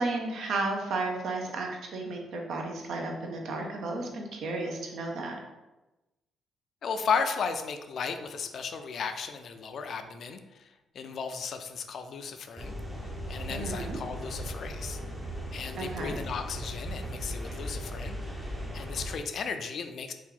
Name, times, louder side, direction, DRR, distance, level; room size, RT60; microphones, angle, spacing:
voice 1, 0.0-5.4 13.5-14.0 15.8-16.1, right 2 dB, 70° right, 1 dB, 0.6 m, -33 dB
voice 2, 6.8-10.7 10.9-12.8 13.3-15.0 15.5-18.2 18.7-20.1, left 6 dB, 60° left, 7 dB, 0.3 m, -35 dB
sound 1, 12.6-19.2, equal, 10° right, 0.5 m, -37 dB
2.9 x 2.4 x 3.7 m, 1.0 s
cardioid pair, 90°, 0 cm